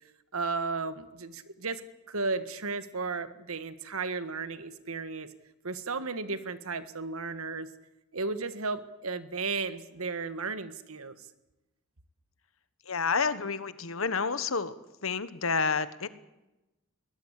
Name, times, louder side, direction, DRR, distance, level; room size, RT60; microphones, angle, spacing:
voice 1, 0.3-1.8 2.1-5.3 5.6-7.7 8.1-11.3, right 4 dB, 75° right, 12 dB, 1.6 m, -34 dB
voice 2, 12.9-14.7 15.0-16.1, left 5 dB, 65° left, 14 dB, 1.3 m, -29 dB
22.0 x 18.5 x 8.3 m, 0.97 s
head